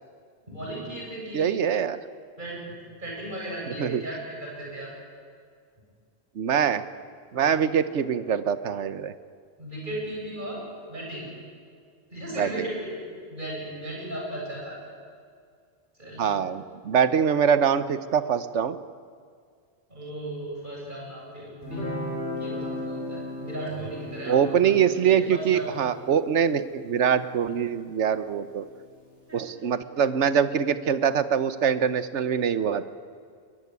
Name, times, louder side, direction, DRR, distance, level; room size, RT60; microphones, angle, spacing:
voice 1, 0.5-1.6 2.4-2.7 3.0-4.9 7.3-7.6 9.6-10.6 10.9-11.3 12.1-12.9 13.3-14.8 16.0-16.5 19.9-24.7 25.0-25.7 29.3-29.5, right 1 dB, 45° right, -4 dB, 8.2 m, -36 dB
voice 2, 1.3-2.0 3.7-4.0 6.3-6.8 7.3-9.1 12.3-12.7 16.2-18.8 24.3-28.6 29.3-32.8, right 7 dB, 75° right, 13 dB, 1.2 m, -24 dB
Guitar, 21.6-28.8, left 2 dB, 75° left, 5.9 m, -37 dB
22.0 x 21.0 x 9.5 m, 2.1 s
omnidirectional pair, 1.2 m